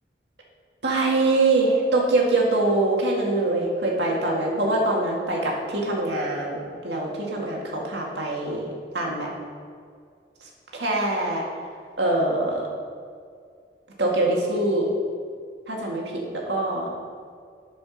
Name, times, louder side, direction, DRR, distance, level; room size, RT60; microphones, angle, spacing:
voice 1, 0.8-8.7 8.9-9.3 10.7-11.4 12.0-12.6 14.0-14.9 15.7-16.0 16.3-17.0, right 2 dB, 85° right, -2 dB, 2.0 m, -23 dB
10.5 x 5.2 x 6.3 m, 2.2 s
head